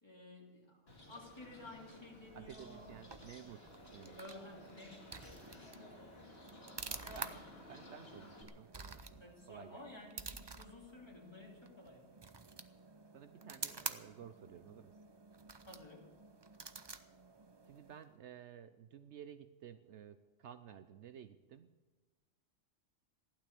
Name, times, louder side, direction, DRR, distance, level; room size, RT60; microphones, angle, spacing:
voice 1, 0.0-2.9 4.2-5.6 7.0-7.4 9.2-12.1 15.7-16.1, left 1 dB, 20° left, -2 dB, 3.1 m, -53 dB
Bird, 0.9-8.4, left 1 dB, 50° left, 2.7 m, -56 dB
voice 2, 2.3-4.2 6.9-7.4 7.7-9.9 13.1-15.0 17.7-21.7, right 9 dB, 65° right, 10 dB, 0.9 m, -54 dB
sound 1, 2.6-18.2, right 4 dB, 30° right, 0.5 m, -50 dB
15.5 x 11.5 x 6.8 m, 1.2 s
omnidirectional pair, 1.3 m